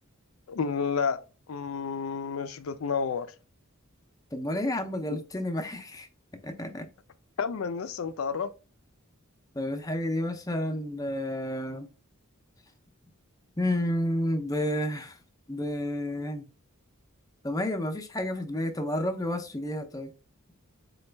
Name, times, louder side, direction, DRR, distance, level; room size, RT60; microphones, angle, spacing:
voice 1, 0.5-1.2 1.5-3.3 7.4-8.5, left 5 dB, 70° left, 0.4 m, -30 dB
voice 2, 4.3-6.1 6.4-6.9 9.5-11.9 13.6-15.2 15.5-16.5 17.4-20.1, left 1 dB, 15° left, 0.5 m, -30 dB
4.2 x 2.3 x 3.3 m
head